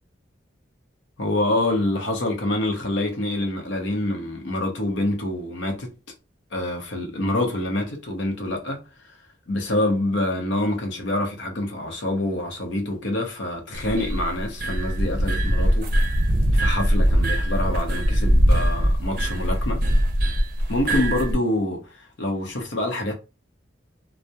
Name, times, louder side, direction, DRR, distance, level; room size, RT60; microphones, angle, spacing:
voice 1, 1.2-5.9 6.5-8.9 9.5-15.9 16.5-19.8 20.7-23.1, left 1 dB, 80° left, 0.7 m, -26 dB
sound 1, 13.7-21.4, equal, 50° right, 0.5 m, -21 dB
2.2 x 2.0 x 2.7 m
head